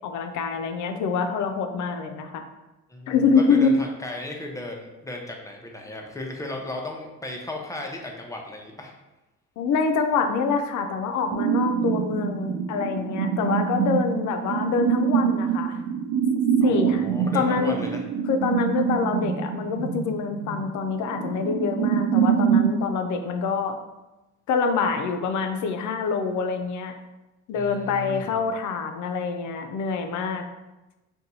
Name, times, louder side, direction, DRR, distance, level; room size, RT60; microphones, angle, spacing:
voice 1, 0.0-2.4 3.1-3.7 9.6-15.8 16.6-17.1 17.3-17.8 18.3-23.8 24.5-26.9 27.5-30.4, left 5 dB, 75° left, 6 dB, 0.5 m, -25 dB
voice 2, 2.9-8.9 16.6-18.0 27.5-28.4, left 2 dB, 10° left, 1 dB, 0.6 m, -35 dB
sound 1, 11.3-22.8, right 7 dB, 90° right, 0.5 m, -25 dB
2.6 x 2.3 x 4.0 m, 1.0 s
cardioid pair, 90°, 30 cm